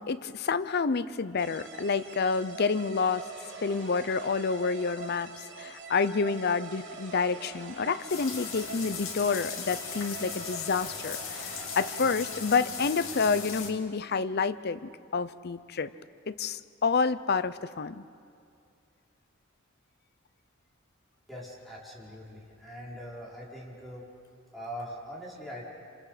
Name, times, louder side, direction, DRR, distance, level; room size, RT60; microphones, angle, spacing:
voice 1, 0.0-3.3 3.6-14.8 15.1-15.9 16.3-18.0, left 5 dB, 50° left, 14 dB, 0.6 m, -29 dB
sound 1, 1.4-13.0, right 5 dB, 60° right, 3.3 m, -45 dB
sound 2, 8.1-13.7, left 6 dB, 75° left, 2.6 m, -38 dB
voice 2, 21.3-24.1 24.5-25.6, equal, ahead, -6 dB, 4.8 m, -42 dB
28.5 x 26.5 x 5.0 m, 2.4 s
head